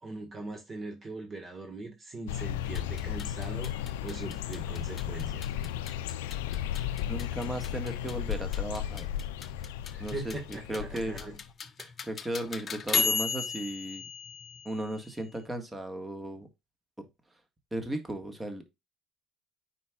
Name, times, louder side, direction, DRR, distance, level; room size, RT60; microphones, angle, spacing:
voice 1, 0.0-5.4 9.9-11.4 11.8-11.9, right 2 dB, 40° right, 1.8 m, -41 dB
sound 1, 2.3-11.4, left 11 dB, 80° left, 0.5 m, -35 dB
sound 2, 2.8-15.4, left 4 dB, 45° left, 0.7 m, -36 dB
voice 2, 7.1-9.1 10.0-11.1 12.0-14.0 14.6-16.5 17.7-18.6, right 1 dB, 20° right, 1.8 m, -36 dB
9.2 x 4.4 x 2.4 m
hypercardioid pair, 55°, 0 cm